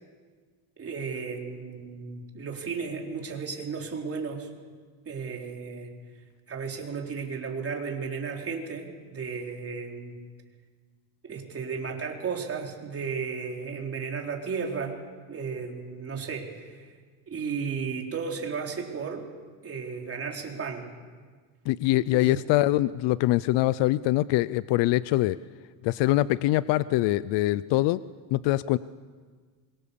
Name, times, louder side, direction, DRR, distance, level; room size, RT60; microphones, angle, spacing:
voice 1, 0.8-4.5 5.1-5.9 6.5-10.2 11.2-15.0 15.3-16.9 17.3-19.3 19.6-20.9 22.1-22.4, right 5 dB, 30° right, 1 dB, 3.9 m, -34 dB
voice 2, 21.7-25.4 25.8-28.0 28.3-28.8, left 16 dB, 65° left, 17 dB, 0.6 m, -23 dB
26.5 x 23.5 x 7.0 m, 1.5 s
cardioid pair, 140°, 47 cm